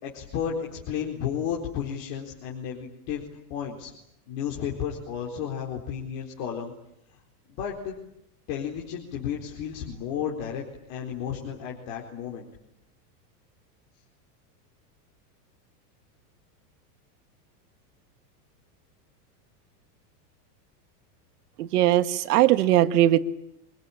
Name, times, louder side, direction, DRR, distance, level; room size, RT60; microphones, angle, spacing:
voice 1, 0.0-3.9 4.3-6.7 7.5-7.9 8.5-12.4, left 8 dB, 45° left, -1 dB, 4.3 m, -33 dB
voice 2, 21.6-23.2, right 13 dB, 75° right, 11 dB, 1.7 m, -20 dB
25.5 x 22.0 x 10.0 m, 0.82 s
supercardioid pair, 155°, 48 cm